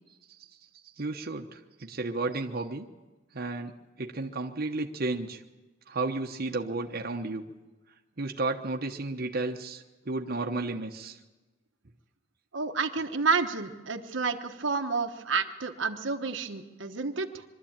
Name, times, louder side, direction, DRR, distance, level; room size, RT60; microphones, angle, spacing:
voice 1, 1.0-2.8 3.3-3.7 4.0-5.4 5.9-7.4 8.2-11.2, right 3 dB, 55° right, 2 dB, 1.1 m, -32 dB
voice 2, 12.5-17.4, right 4 dB, 75° right, 5 dB, 1.2 m, -30 dB
23.0 x 13.0 x 8.8 m, 1.2 s
head